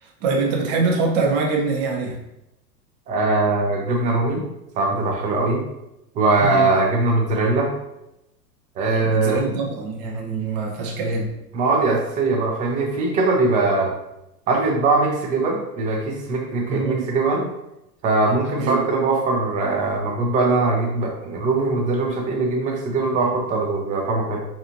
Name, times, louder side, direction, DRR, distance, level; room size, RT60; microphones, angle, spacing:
voice 1, 0.0-2.2 6.4-6.7 9.0-11.3 16.7-17.1 18.6-18.9, right 4 dB, 40° right, 0 dB, 0.9 m, -24 dB
voice 2, 3.1-4.5 4.8-5.6 6.1-7.7 8.8-9.4 11.5-13.9 14.5-17.5 18.0-24.4, right 3 dB, 15° right, 1 dB, 0.4 m, -21 dB
4.0 x 2.8 x 2.8 m, 0.89 s
hypercardioid pair, 100°, 50 cm